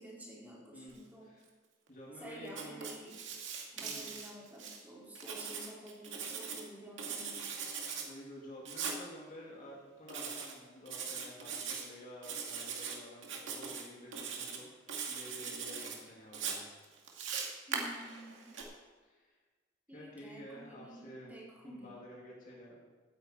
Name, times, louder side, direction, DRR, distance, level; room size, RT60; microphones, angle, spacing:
voice 1, 0.0-1.3 2.2-3.1 3.7-7.5 17.7-18.5 19.9-22.0, right 1 dB, 10° right, -6 dB, 4.0 m, -51 dB
voice 2, 0.7-1.4 1.9-2.8 3.8-4.1 8.0-16.7 19.0-19.3 19.9-21.3 21.6-22.8, equal, 45° left, -4 dB, 2.8 m, -51 dB
Writing, 2.5-4.8 5.2-6.6 7.0-8.1 8.7-9.0 10.1-10.5 10.9-11.8 12.2-13.0 13.2-13.8 14.1-14.6 14.9-16.0 16.3-18.6, right 6 dB, 70° right, 2.2 m, -40 dB
17.0 x 9.5 x 4.5 m, 1.4 s
head